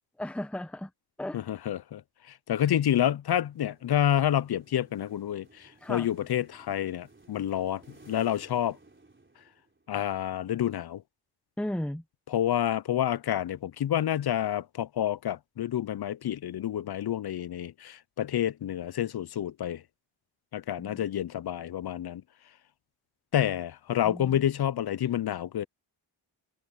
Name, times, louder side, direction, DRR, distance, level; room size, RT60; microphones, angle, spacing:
voice 1, 0.2-0.9 1.2-1.4 5.8-6.1 11.6-12.0 20.8-21.0 24.0-24.4, left 1 dB, 5° left, 0.8 m, -35 dB
voice 2, 1.3-2.0 2.3-8.8 9.9-11.0 12.3-19.8 20.5-22.2 23.3-25.6, left 11 dB, 55° left, 0.5 m, -29 dB
sound 1, 3.4-9.9, right 2 dB, 25° right, 4.1 m, -57 dB
wide cardioid pair, 85°, 48 cm